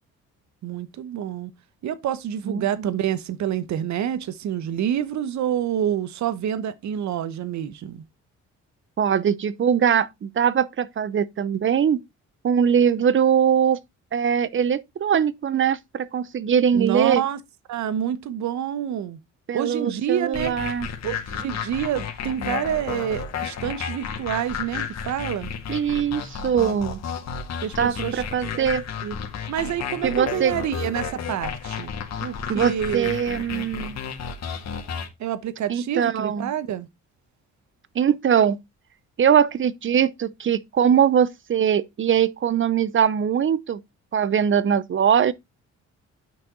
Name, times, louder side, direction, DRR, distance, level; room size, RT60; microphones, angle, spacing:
voice 1, 0.6-1.5 1.8-8.0 16.7-17.4 17.7-19.2 19.5-20.5 21.0-25.5 27.6-28.7 29.0-29.2 29.5-31.9 32.2-33.1 35.2-36.9, right 10 dB, 65° right, 1.0 m, -27 dB
voice 2, 2.4-2.9 9.0-12.0 12.4-13.8 14.1-17.2 19.5-20.9 25.7-27.0 27.8-28.9 30.0-30.5 32.5-34.0 35.7-36.5 37.9-38.6 39.2-43.8 44.1-45.3, right 8 dB, 40° right, 0.7 m, -21 dB
sound 1, 20.3-35.1, left 6 dB, 60° left, 2.0 m, -32 dB
8.9 x 6.0 x 3.8 m
cardioid pair, 90°, 30 cm